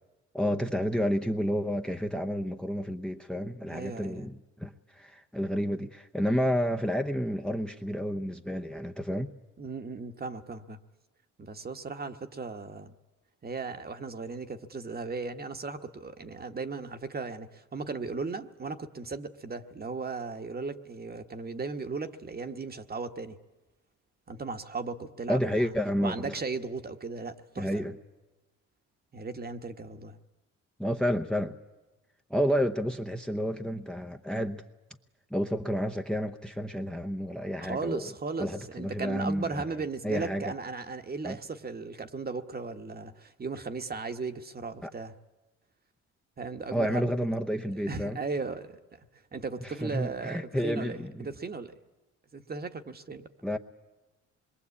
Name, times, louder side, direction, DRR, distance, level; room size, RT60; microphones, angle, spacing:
voice 1, 0.3-9.3 25.3-26.3 27.6-28.0 30.8-31.6 32.3-34.6 35.3-38.1 38.4-39.6 40.0-40.5 41.2-41.4 44.8-44.9 46.7-48.2 49.6-51.3 53.4-53.6, equal, 5° left, 0.9 m, -30 dB
voice 2, 3.7-4.3 9.6-10.8 11.4-12.9 13.4-23.4 24.3-25.7 26.0-27.8 29.1-30.2 37.6-45.1 46.4-47.3 47.7-49.0 49.3-51.7 52.3-53.3, right 4 dB, 30° right, 1.4 m, -37 dB
26.0 x 22.0 x 8.5 m
cardioid pair, 90°, 30 cm